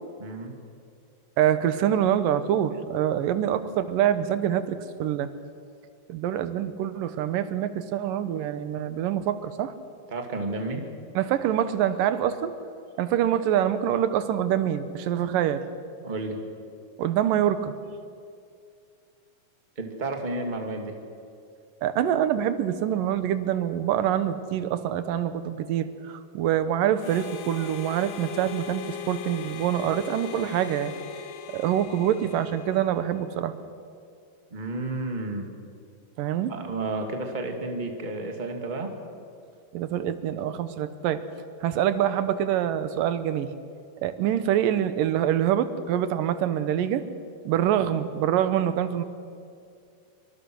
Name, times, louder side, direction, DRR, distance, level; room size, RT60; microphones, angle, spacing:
voice 1, 0.2-0.5 10.1-10.9 16.0-16.4 19.8-21.0 34.5-35.5 36.5-38.9, right 2 dB, 15° right, 3 dB, 2.0 m, -31 dB
voice 2, 1.4-5.3 6.1-9.7 11.2-12.5 13.0-15.6 17.0-17.7 21.8-30.9 31.5-33.5 36.2-36.5 39.7-41.2 41.6-43.5 44.0-47.0 47.5-49.0, right 10 dB, 85° right, 12 dB, 2.8 m, -25 dB
Harmonica, 27.0-33.3, left 9 dB, 65° left, 2.0 m, -39 dB
26.0 x 24.5 x 6.4 m, 2.4 s
omnidirectional pair, 3.8 m